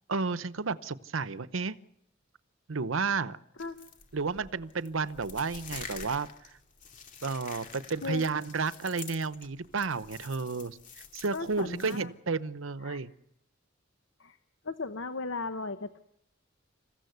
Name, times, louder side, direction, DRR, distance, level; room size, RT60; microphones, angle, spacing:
voice 1, 0.1-1.7 2.7-3.4 4.1-6.3 7.2-10.8 11.1-13.1, right 4 dB, 90° right, 15 dB, 0.8 m, -32 dB
sound 1, 3.6-12.0, left 5 dB, 40° left, 2.5 m, -47 dB
voice 2, 11.3-12.1 12.8-13.0 14.2-14.4 14.6-16.0, left 3 dB, 70° left, 9 dB, 1.1 m, -36 dB
27.5 x 15.0 x 8.1 m, 0.76 s
head